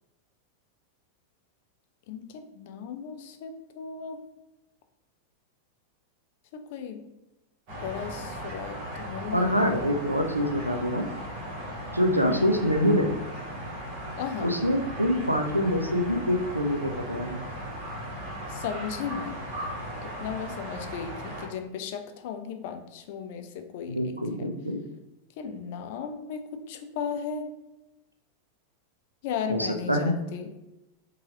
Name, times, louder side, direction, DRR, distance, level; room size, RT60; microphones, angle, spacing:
voice 1, 2.1-4.2 6.7-7.0 7.8-9.9 12.2-12.5 14.2-14.5 18.5-19.4 20.0-24.5 25.4-27.5 29.2-30.5, left 7 dB, 50° left, 7 dB, 0.3 m, -36 dB
sound 1, 7.7-21.5, equal, 45° right, 1.0 m, -37 dB
voice 2, 9.3-11.1 11.9-13.2 14.4-17.4 23.9-24.8 29.5-30.3, equal, 90° right, 4 dB, 0.3 m, -25 dB
2.9 x 2.2 x 2.9 m, 0.94 s
figure-of-eight pair, 90°, 0 cm